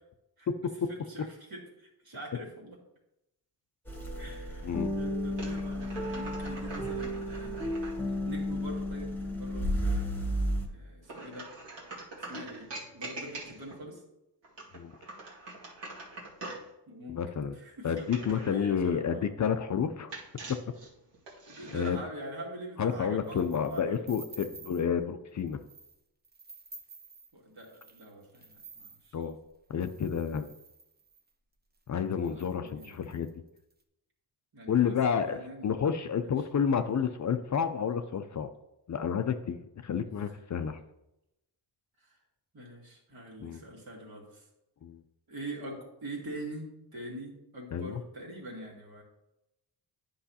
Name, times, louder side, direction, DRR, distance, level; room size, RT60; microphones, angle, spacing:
voice 1, 0.9-2.8 4.2-7.7 8.0-11.5 12.3-14.0 16.9-17.2 17.5-19.3 21.5-24.0 27.3-29.1 32.1-33.0 34.5-35.7 36.2-36.4 40.3-40.4 42.0-42.1 42.5-44.4 45.3-49.0, right 1 dB, 55° right, -2 dB, 2.2 m, -44 dB
sound 1, 3.9-10.7, equal, 5° left, 1.4 m, -33 dB
sound 2, 5.3-8.0 11.0-13.8 14.4-16.7 17.9-18.6 20.1-21.9, right 2 dB, 80° right, 1.9 m, -44 dB
voice 2, 17.1-17.5 17.8-20.1 20.5-20.6 21.7-22.0 22.8-25.6 29.1-29.4 29.7-30.5 31.9-33.3 34.7-35.4 35.6-38.5 38.9-40.8 43.4-43.6 44.8-45.0 47.7-48.0, left 7 dB, 45° left, 9 dB, 0.5 m, -30 dB
sound 3, 23.2-24.9 25.4-26.0 26.2-31.3 31.9-32.0 32.2-33.7, right 3 dB, 20° right, 0.8 m, -52 dB
10.0 x 5.5 x 2.8 m, 0.87 s
wide cardioid pair, 115°, 43 cm